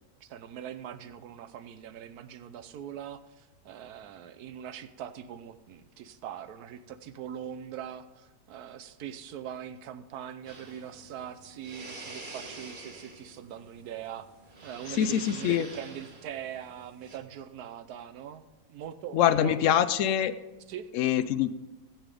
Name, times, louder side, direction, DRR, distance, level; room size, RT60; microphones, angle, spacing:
voice 1, 0.2-14.3 14.6-18.4 18.7-19.7 20.7-20.9, right 9 dB, 65° right, 11 dB, 1.1 m, -42 dB
sound 1, 10.5-17.2, right 2 dB, 30° right, 1.3 m, -47 dB
voice 2, 15.0-15.7 19.1-20.3 20.9-21.5, left 10 dB, 85° left, 12 dB, 0.6 m, -24 dB
15.0 x 7.9 x 5.0 m, 1.1 s
omnidirectional pair, 1.9 m